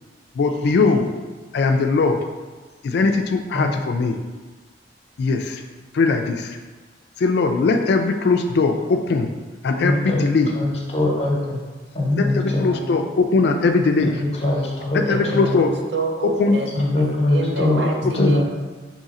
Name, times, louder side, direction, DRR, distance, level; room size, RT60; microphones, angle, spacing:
voice 1, 0.4-1.1 1.5-2.2 2.8-4.2 5.2-5.6 5.9-6.6 7.2-9.3 9.6-10.5 12.1-14.2 14.9-15.7 16.4-16.6 18.0-18.3, left 3 dB, 60° left, 5 dB, 0.3 m, -20 dB
voice 2, 9.8-10.2 10.5-11.6 11.9-12.8 14.0-15.6 16.7-18.4, left 1 dB, 35° left, -2 dB, 0.9 m, -22 dB
voice 3, 15.0-18.4, right 3 dB, 70° right, 3 dB, 0.5 m, -29 dB
3.7 x 3.1 x 4.1 m, 1.3 s
head